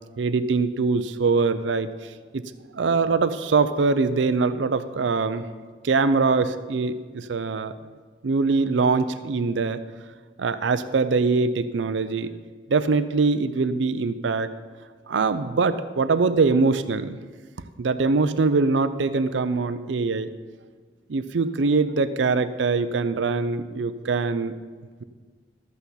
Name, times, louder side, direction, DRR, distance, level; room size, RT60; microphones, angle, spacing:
voice 1, 0.2-1.9 2.7-5.4 5.8-7.7 8.2-9.8 10.4-12.3 12.7-14.5 15.1-17.2 17.8-20.3 21.1-24.5, right 4 dB, 90° right, 12 dB, 0.5 m, -23 dB
12.5 x 8.2 x 4.0 m, 1.5 s
head